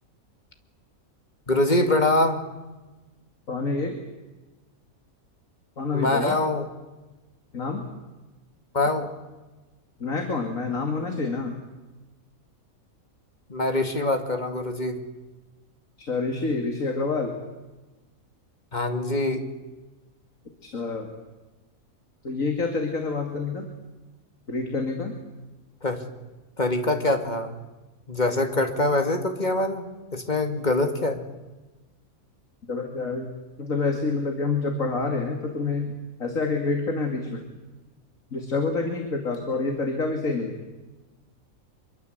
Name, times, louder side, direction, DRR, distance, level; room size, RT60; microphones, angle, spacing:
voice 1, 1.5-2.4 5.9-6.7 8.7-9.1 13.5-15.0 18.7-19.5 25.8-26.0 26.6-27.5 28.1-31.2, left 2 dB, 30° left, 6 dB, 2.5 m, -24 dB
voice 2, 3.5-4.0 5.8-6.3 7.5-7.8 10.0-11.6 16.1-17.4 20.6-21.1 22.2-23.7 24.5-25.1 32.7-33.3 33.6-37.4 38.3-40.6, left 3 dB, 70° left, 3 dB, 2.9 m, -27 dB
25.0 x 23.5 x 8.1 m, 1.2 s
omnidirectional pair, 1.5 m